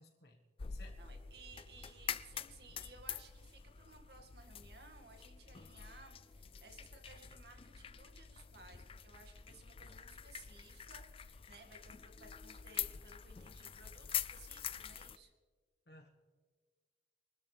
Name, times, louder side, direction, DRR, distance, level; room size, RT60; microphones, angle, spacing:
voice 1, 0.0-1.0 15.9-16.1, left 2 dB, 65° left, 1 dB, 1.4 m, -59 dB
sound 1, 0.6-15.2, left 9 dB, 30° left, 0.4 m, -46 dB
voice 2, 1.0-15.3, right 3 dB, 65° right, 4 dB, 2.1 m, -59 dB
24.0 x 13.0 x 3.4 m, 1.5 s
head